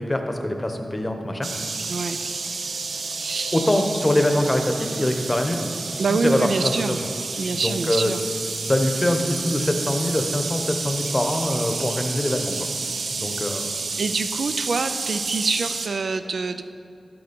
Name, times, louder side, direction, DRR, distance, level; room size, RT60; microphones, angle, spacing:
voice 1, 0.0-1.5 3.5-5.7 6.1-6.9 7.6-8.1 8.7-12.6 13.1-13.7, left 1 dB, 20° left, 5 dB, 0.9 m, -23 dB
sound 1, 1.4-15.9, right 4 dB, 85° right, 0.8 m, -30 dB
voice 2, 1.9-2.2 3.2-3.8 6.0-7.0 7.4-8.2 14.0-16.6, right 4 dB, 70° right, 9 dB, 0.4 m, -26 dB
12.0 x 6.8 x 5.2 m, 2.5 s
wide cardioid pair, 130°, 0 cm